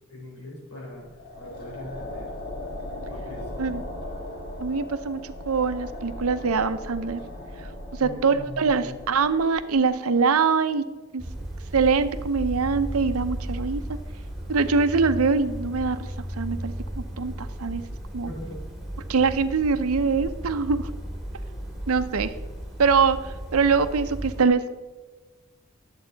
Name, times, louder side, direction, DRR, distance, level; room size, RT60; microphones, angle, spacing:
voice 1, 0.1-2.3 3.1-3.9 8.0-9.0 18.3-18.6, left 1 dB, 85° left, -3 dB, 3.5 m, -41 dB
sound 1, 1.0-10.3, left 1 dB, 45° left, 2.0 m, -38 dB
voice 2, 4.6-7.2 7.9-10.8 11.1-11.2 11.7-14.0 14.5-17.8 18.1-18.3 19.1-20.9 21.9-22.3 22.8-24.6, right 5 dB, 75° right, 11 dB, 0.6 m, -23 dB
sound 2, 11.2-24.4, right 1 dB, ahead, 1.9 m, -35 dB
11.0 x 7.9 x 3.9 m, 1.3 s
head